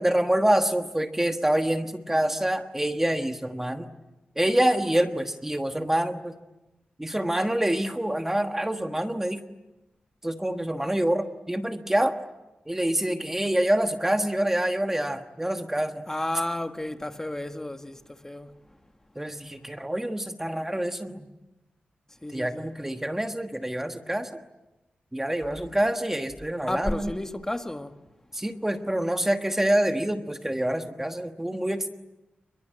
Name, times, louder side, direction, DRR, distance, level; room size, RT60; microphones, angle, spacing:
voice 1, 0.0-3.9 4.4-6.3 7.0-9.4 10.2-12.2 12.7-16.0 19.1-21.2 22.3-24.4 25.1-27.1 28.3-31.9, right 1 dB, 10° right, 1.4 m, -26 dB
voice 2, 16.1-18.5 22.2-22.7 26.7-28.0, left 1 dB, 15° left, 1.6 m, -32 dB
29.5 x 22.0 x 9.2 m
wide cardioid pair, 105°, 3 cm